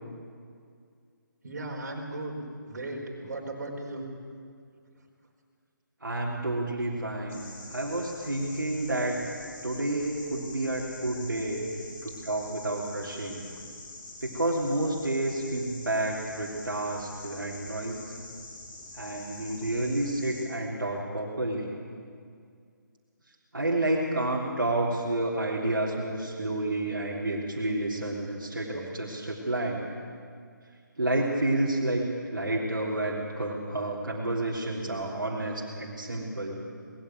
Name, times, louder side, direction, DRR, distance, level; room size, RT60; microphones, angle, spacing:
voice 1, 1.4-4.0, right 2 dB, 55° right, 0 dB, 4.4 m, -36 dB
voice 2, 6.0-9.2 9.6-11.7 12.0-13.4 14.2-18.0 18.9-21.7 23.5-29.8 31.0-36.6, right 1 dB, 80° right, -4 dB, 3.4 m, -30 dB
sound 1, 7.3-20.4, left 2 dB, 15° left, 3.1 m, -45 dB
20.5 x 14.5 x 9.0 m, 2.2 s
figure-of-eight pair, 150°, 11 cm